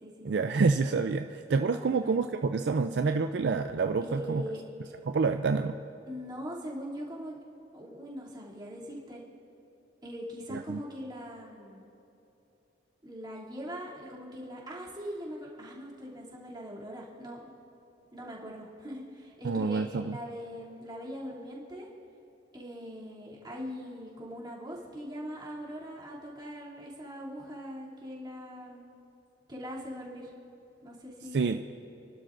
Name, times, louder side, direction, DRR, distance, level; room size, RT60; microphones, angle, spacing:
voice 1, 0.2-4.4 5.1-5.7 10.5-10.8 19.4-20.2 31.3-31.6, right 4 dB, 65° right, 7 dB, 0.4 m, -28 dB
voice 2, 1.6-2.0 4.0-4.9 6.1-7.4 7.7-9.2 10.0-11.9 13.0-17.5 18.1-21.9 22.5-28.9 29.5-30.3 30.8-31.5, equal, 25° right, -6 dB, 2.9 m, -41 dB
29.5 x 12.0 x 2.6 m, 3.0 s
head